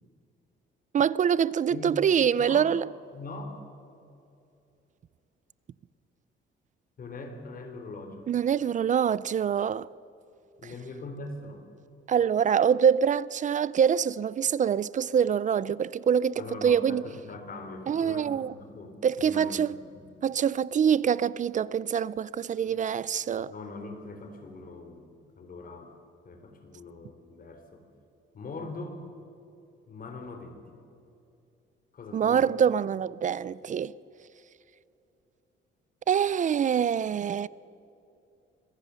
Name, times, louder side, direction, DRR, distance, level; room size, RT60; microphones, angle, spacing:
voice 1, 0.9-2.9 8.3-9.9 12.1-17.0 17.9-18.5 19.0-19.8 20.2-23.5 32.1-33.9 36.1-37.5, right 8 dB, 40° right, 0.4 m, -25 dB
voice 2, 1.7-2.0 2.4-2.7 3.1-3.6 7.0-8.3 10.6-11.6 16.4-20.2 22.7-22.8 23.5-25.1 25.4-25.9 26.2-27.8 28.3-29.0 29.9-30.7 31.9-32.4, left 3 dB, 45° left, 3.6 m, -42 dB
25.0 x 16.5 x 6.9 m
cardioid pair, 135°, 21 cm